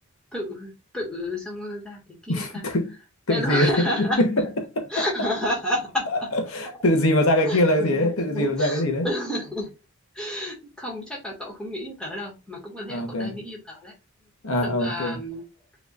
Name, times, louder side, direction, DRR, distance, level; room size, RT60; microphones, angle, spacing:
voice 1, 0.3-2.7 3.3-4.2 4.9-6.3 7.4-9.7 10.1-13.9 14.6-15.4, left 1 dB, 5° left, 1.8 m, -30 dB
voice 2, 2.3-2.9 3.3-4.3 4.8-5.0 6.3-9.1 12.9-13.4 14.4-15.2, left 1 dB, 70° left, 1.0 m, -23 dB
5.2 x 3.2 x 2.4 m
head